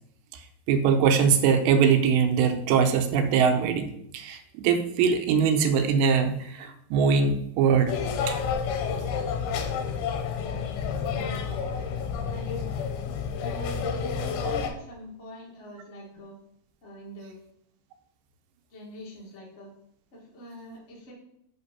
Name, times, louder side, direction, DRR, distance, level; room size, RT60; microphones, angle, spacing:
voice 1, 0.7-7.9 8.3-8.4 14.4-14.5, right 6 dB, 85° right, 6 dB, 2.9 m, -22 dB
sound 1, 7.9-14.7, left 6 dB, 75° left, 2.5 m, -30 dB
voice 2, 10.9-11.4 12.3-12.7 13.0-16.3 16.8-17.4 18.7-19.7 20.1-21.1, equal, 40° left, -3 dB, 0.9 m, -45 dB
5.9 x 5.8 x 5.5 m, 0.74 s
omnidirectional pair, 4.9 m